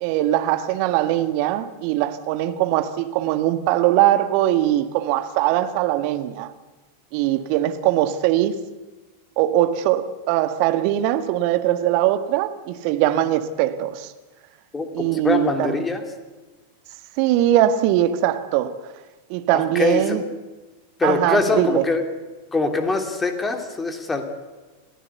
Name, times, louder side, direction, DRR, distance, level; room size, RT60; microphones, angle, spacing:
voice 1, 0.0-6.5 7.1-8.5 9.4-14.1 14.9-15.8 17.2-18.8 19.3-20.2 21.0-21.8, right 13 dB, 45° right, 1.6 m, -21 dB
voice 2, 14.7-16.0 19.5-20.2 21.0-22.0 22.5-24.2, left 3 dB, 15° left, 3.2 m, -23 dB
28.0 x 15.5 x 8.2 m
figure-of-eight pair, 90°, 0 cm